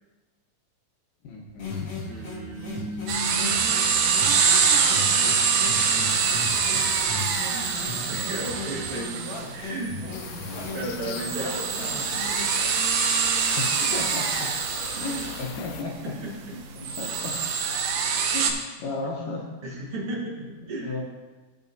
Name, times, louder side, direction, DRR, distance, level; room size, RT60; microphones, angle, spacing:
voice 1, 1.2-1.9 13.6-14.6 15.0-16.2 16.8-17.4 18.3-19.5 20.8-21.0, left 3 dB, 70° left, -2 dB, 2.2 m, -34 dB
sound 1, 1.6-12.2, left 3 dB, 45° left, 2.6 m, -37 dB
voice 2, 2.0-3.6 6.7-7.7 8.1-9.2 9.5-10.0 10.7-12.7 14.9-15.2 15.6-15.7 16.0-16.5 19.6-21.0, right 1 dB, 55° right, -3 dB, 1.7 m, -35 dB
sound 2, 3.1-18.5, right 6 dB, 75° right, 1.9 m, -25 dB
sound 3, 10.1-15.8, left 9 dB, 90° left, 2.7 m, -41 dB
16.0 x 6.4 x 2.7 m, 1.2 s
omnidirectional pair, 4.6 m